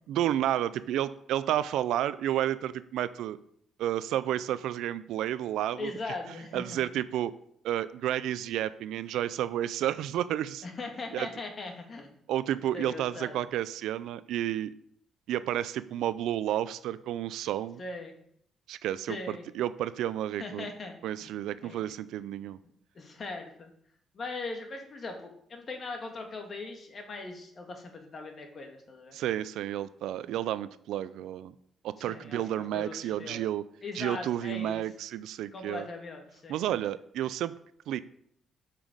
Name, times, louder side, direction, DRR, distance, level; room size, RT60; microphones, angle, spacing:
voice 1, 0.1-3.4 3.8-5.9 6.5-7.3 7.6-10.6 11.1-11.3 12.3-14.7 15.3-17.8 18.7-20.7 21.0-22.6 29.1-31.5 31.8-33.6 33.9-35.9 36.5-37.5 37.9-38.0, right 12 dB, 85° right, 15 dB, 0.4 m, -31 dB
voice 2, 5.8-6.8 10.6-12.1 12.7-13.4 17.8-18.1 19.1-19.4 20.4-20.9 21.2-21.3 21.6-21.8 23.0-23.7 24.1-29.2 32.0-33.4 33.8-34.8 35.5-36.6, left 3 dB, 45° left, 4 dB, 1.8 m, -40 dB
7.1 x 5.8 x 5.0 m, 0.67 s
cardioid pair, 90°, 0 cm